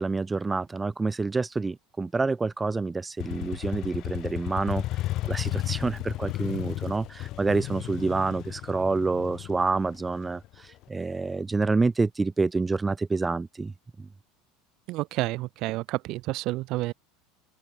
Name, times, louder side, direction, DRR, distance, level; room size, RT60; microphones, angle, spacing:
voice 1, 0.0-13.7, right 3 dB, 10° right, 0.8 m, -28 dB
Motorcycle, 3.2-10.8, left 15 dB, 45° left, 0.9 m, -34 dB
voice 2, 14.9-16.9, right 19 dB, 50° right, 0.9 m, -30 dB
open air
supercardioid pair, 150°, 0 cm